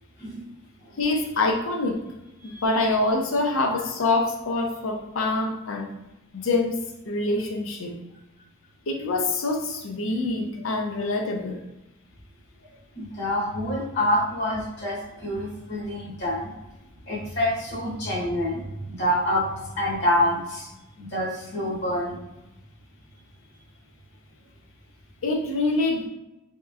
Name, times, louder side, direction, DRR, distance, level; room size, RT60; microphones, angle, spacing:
voice 1, 1.0-2.0 2.4-5.9 6.3-6.8 7.1-7.9 8.9-11.6 25.2-26.1, left 2 dB, 70° left, 3 dB, 0.5 m, -25 dB
voice 2, 2.4-2.8 12.9-16.6 17.1-20.7 21.0-22.2, left 1 dB, 50° left, -5 dB, 0.9 m, -27 dB
3.1 x 2.9 x 2.3 m, 0.94 s
head